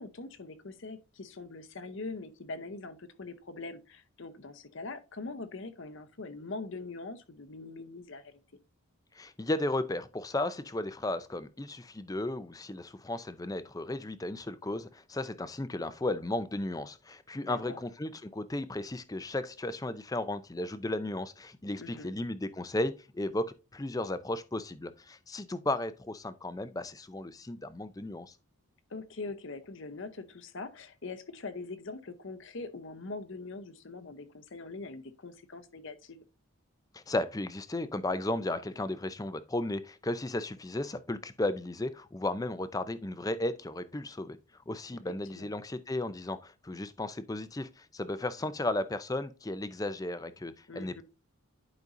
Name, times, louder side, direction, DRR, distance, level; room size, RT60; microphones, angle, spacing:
voice 1, 0.0-8.4 17.4-17.8 21.8-22.1 28.9-36.2 45.3-45.5 50.7-51.0, left 3 dB, 55° left, 0.8 m, -42 dB
voice 2, 9.2-28.3 36.9-44.4 44.7-51.0, left 1 dB, 15° left, 0.5 m, -34 dB
11.0 x 5.2 x 2.6 m
head